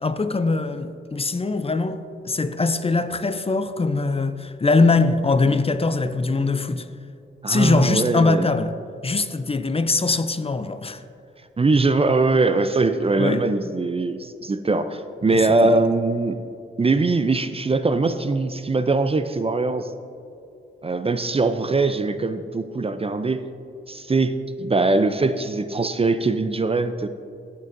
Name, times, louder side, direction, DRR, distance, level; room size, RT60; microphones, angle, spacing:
voice 1, 0.0-2.0 2.3-6.9 7.5-8.7 9.0-11.0 13.2-13.4 15.3-15.7, left 3 dB, 25° left, 0.5 m, -22 dB
voice 2, 7.4-8.5 11.6-16.4 16.8-19.9 20.8-23.5 23.9-27.1, right 3 dB, 25° right, 0.5 m, -21 dB
17.0 x 6.7 x 2.6 m
cardioid pair, 60°, 21 cm